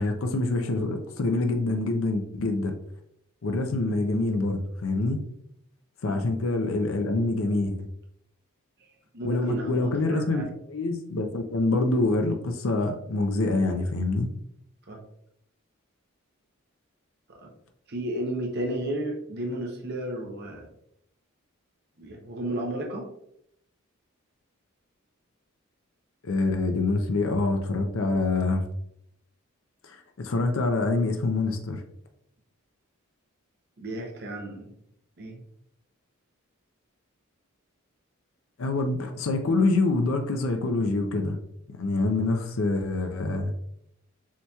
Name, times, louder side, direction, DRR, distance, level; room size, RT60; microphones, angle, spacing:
voice 1, 0.0-2.7 3.4-5.2 6.0-7.9 9.2-14.3 26.2-28.6 29.8-31.8 38.6-41.4 41.7-43.5, left 2 dB, 65° left, 5 dB, 0.5 m, -26 dB
voice 2, 9.1-10.5 14.9-15.0 17.4-17.5 17.9-20.7 22.0-23.0 33.8-34.7 35.2-35.4, right 1 dB, 50° right, 1 dB, 0.7 m, -33 dB
7.2 x 2.9 x 2.3 m, 0.73 s
head